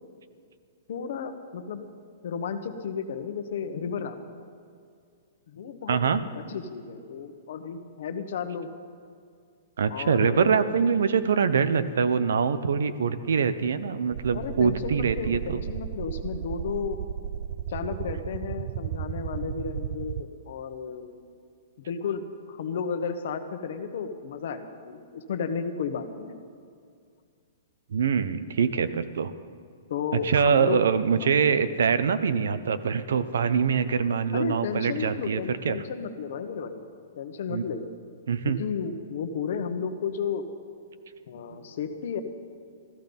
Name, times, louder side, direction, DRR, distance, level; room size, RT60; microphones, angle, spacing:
voice 1, 0.9-1.8 2.2-4.2 5.5-6.0 6.4-8.7 9.9-10.7 14.3-17.0 17.7-21.1 21.8-26.4 29.9-30.8 31.2-31.4 34.3-36.8 37.2-37.9 38.4-40.4 41.3-42.2, left 6 dB, 50° left, 8 dB, 1.1 m, -33 dB
voice 2, 5.9-6.2 9.8-15.6 27.9-29.3 30.1-35.4 35.6-35.8 37.5-37.6 38.3-38.6 41.5-41.6, right 6 dB, 80° right, 12 dB, 0.8 m, -24 dB
sound 1, 14.1-20.2, right 10 dB, 40° right, 0.4 m, -34 dB
14.5 x 14.0 x 5.4 m, 2.2 s
hypercardioid pair, 180°, 0 cm